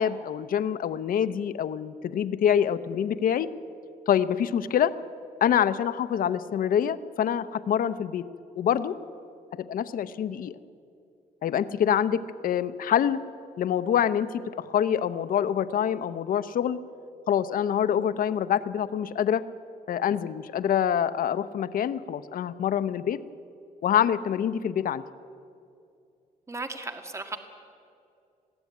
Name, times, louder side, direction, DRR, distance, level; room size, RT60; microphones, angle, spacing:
voice 1, 0.0-3.5 4.1-4.9 5.4-8.2 8.6-8.9 9.7-10.6 11.4-13.2 13.6-14.3 14.6-16.8 17.3-19.4 19.9-23.2 23.8-25.0, left 9 dB, 65° left, 12 dB, 0.8 m, -25 dB
voice 2, 26.5-27.4, right 3 dB, 20° right, 6 dB, 1.9 m, -35 dB
21.0 x 15.5 x 9.4 m, 2.6 s
cardioid pair, 115°, 16 cm